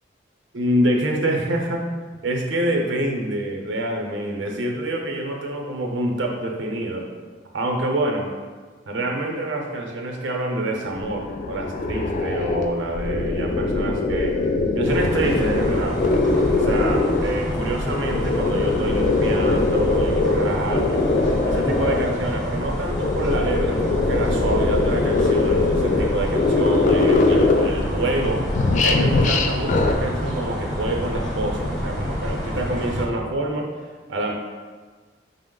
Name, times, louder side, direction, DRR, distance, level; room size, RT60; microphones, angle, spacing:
voice 1, 0.5-1.8 2.2-7.1 7.5-8.3 8.9-14.4 14.7-16.0 16.6-21.0 21.4-28.5 28.8-33.7 34.1-34.3, right 1 dB, 85° right, 1 dB, 0.6 m, -26 dB
sound 1, 10.9-17.4 17.9-22.2 22.8-27.9 28.2-29.9, left 3 dB, 40° left, 0.3 m, -22 dB
sound 2, 14.9-33.1, equal, ahead, 0.9 m, -28 dB
5.2 x 2.0 x 3.7 m, 1.4 s
head